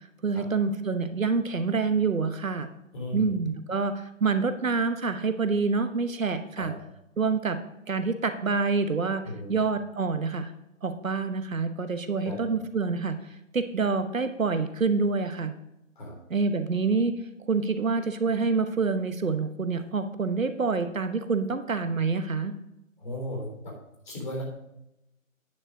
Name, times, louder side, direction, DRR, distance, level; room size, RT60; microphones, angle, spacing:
voice 1, 0.2-2.7 3.1-6.7 7.2-7.6 7.9-10.5 10.8-15.5 16.3-17.1 17.5-22.5, right 4 dB, 80° right, 9 dB, 1.1 m, -27 dB
voice 2, 2.9-3.3 6.6-6.7 9.3-9.5 12.2-12.6 16.0-16.2 23.0-23.8 24.1-24.4, left 1 dB, 35° left, -1 dB, 3.5 m, -35 dB
9.7 x 5.0 x 6.4 m, 0.85 s
figure-of-eight pair, 160°, 40 cm